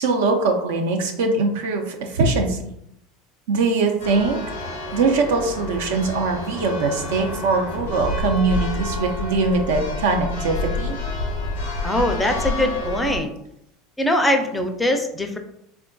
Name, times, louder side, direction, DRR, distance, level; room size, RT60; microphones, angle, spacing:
voice 1, 0.0-2.6 3.5-4.4 4.9-11.0, right 3 dB, 70° right, 3 dB, 0.5 m, -22 dB
Church bell, 4.0-13.2, left 2 dB, 80° left, 0.6 m, -29 dB
voice 2, 11.8-13.3 14.0-15.4, left 1 dB, 10° left, 5 dB, 0.4 m, -22 dB
3.5 x 2.4 x 2.2 m, 0.76 s
hypercardioid pair, 80°, 0 cm